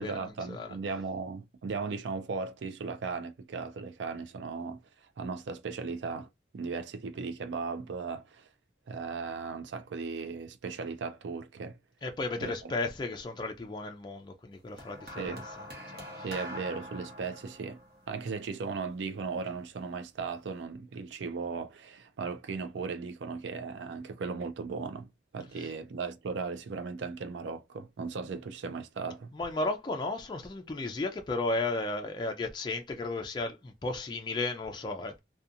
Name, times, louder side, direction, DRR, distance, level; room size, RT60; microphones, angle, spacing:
voice 1, 0.0-4.8 5.2-8.5 8.9-11.8 12.4-12.8 15.2-15.5 16.2-17.8 18.1-25.1 25.3-29.3, right 4 dB, 85° right, 0.4 m, -37 dB
voice 2, 12.0-15.4 15.9-16.3 29.4-35.2, left 2 dB, 25° left, 0.3 m, -34 dB
sound 1, 14.8-19.2 20.1-20.4, left 1 dB, 55° right, 0.9 m, -44 dB
2.7 x 2.2 x 2.4 m
head